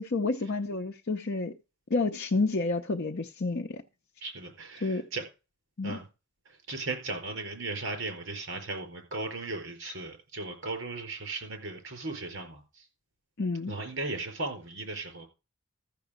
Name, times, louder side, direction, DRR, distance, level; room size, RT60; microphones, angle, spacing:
voice 1, 0.0-1.5 1.9-3.8 4.8-5.1 5.8-6.0 13.4-13.7, left 3 dB, 55° left, 0.7 m, -29 dB
voice 2, 4.2-5.2 5.8-6.1 6.4-12.9 13.7-15.3, right 3 dB, 65° right, 4.6 m, -37 dB
14.0 x 6.8 x 5.1 m
head